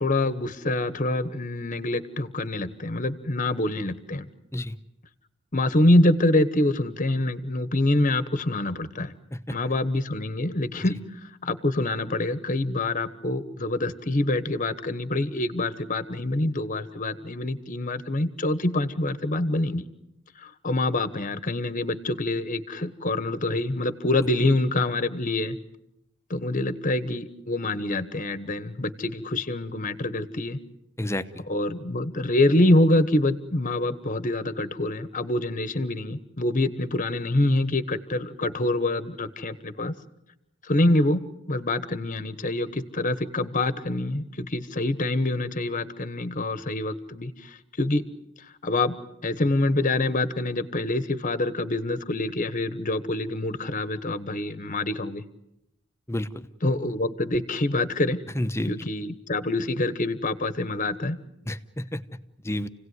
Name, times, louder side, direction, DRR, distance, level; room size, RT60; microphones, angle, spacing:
voice 1, 0.0-4.3 5.5-9.1 9.5-19.8 20.4-25.6 26.3-30.6 31.5-40.0 40.6-41.2 41.5-48.0 48.4-49.0 49.2-55.2 56.6-58.2 58.7-61.2, left 2 dB, 40° left, 14 dB, 1.2 m, -26 dB
voice 2, 31.0-31.4 56.1-56.5 58.3-58.7 61.5-62.0 62.4-62.7, left 1 dB, 15° left, 11 dB, 0.9 m, -30 dB
29.0 x 17.5 x 9.6 m, 0.87 s
head